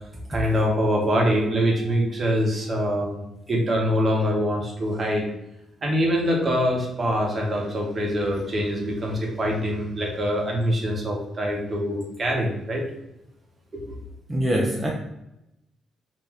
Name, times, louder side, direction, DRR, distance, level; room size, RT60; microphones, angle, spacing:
voice 1, 0.3-3.2 3.5-5.2 5.8-12.8 13.7-14.0, equal, 35° right, 0 dB, 0.9 m, -24 dB
voice 2, 14.3-14.9, equal, 15° right, -1 dB, 0.4 m, -23 dB
2.6 x 2.2 x 3.3 m, 0.87 s
cardioid pair, 90°, 0 cm